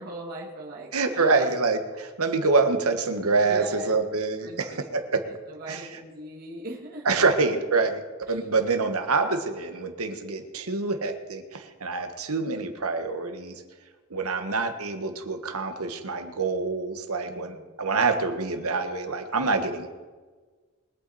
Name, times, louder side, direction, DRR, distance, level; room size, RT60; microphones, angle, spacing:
voice 1, 0.0-1.5 3.5-3.9 4.4-4.8 5.5-7.2 8.3-8.4 17.2-17.8, right 2 dB, 45° right, -5 dB, 2.2 m, -39 dB
voice 2, 0.9-5.2 5.7-5.9 7.0-8.0 8.3-13.6 14.1-19.9, right 3 dB, 75° right, 6 dB, 1.6 m, -26 dB
23.0 x 8.7 x 4.3 m, 1.4 s
head